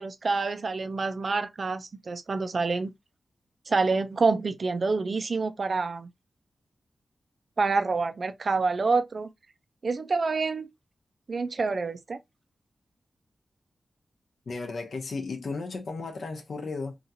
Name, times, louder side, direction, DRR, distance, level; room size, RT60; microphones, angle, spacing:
voice 1, 0.0-2.9 3.7-6.1 7.6-9.3 9.8-10.7 11.3-12.2, right 4 dB, 50° right, 0.4 m, -27 dB
voice 2, 14.5-17.0, left 4 dB, 65° left, 0.7 m, -34 dB
2.8 x 2.4 x 2.7 m
wide cardioid pair, 125°, 0 cm